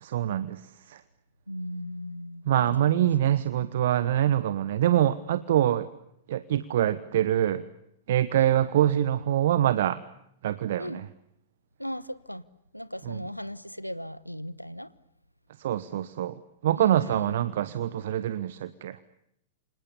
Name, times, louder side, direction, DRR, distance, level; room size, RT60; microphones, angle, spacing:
voice 1, 0.0-0.6 0.9-1.0 2.5-5.9 6.3-7.6 8.1-10.0 10.4-11.1 13.0-13.3 15.6-16.3 16.6-19.0, right 11 dB, 55° right, 1.0 m, -25 dB
voice 2, 1.5-3.0 3.6-3.7 8.3-8.5 10.8-11.0 11.8-12.4 12.7-14.9 16.8-17.4, equal, 90° left, 1.1 m, -37 dB
29.5 x 26.5 x 7.0 m
figure-of-eight pair, 100°, 0 cm